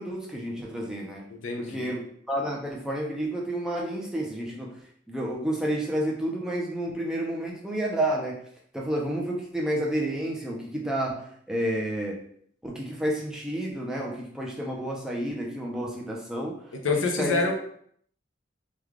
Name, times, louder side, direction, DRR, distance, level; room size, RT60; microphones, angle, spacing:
voice 1, 0.0-1.2 1.6-2.0 2.3-4.8 5.1-8.4 8.7-12.2 12.6-17.4, right 1 dB, 5° right, -2 dB, 0.5 m, -30 dB
voice 2, 1.3-1.9 16.8-17.5, left 3 dB, 90° left, 4 dB, 0.6 m, -26 dB
3.2 x 2.3 x 3.5 m, 0.63 s
head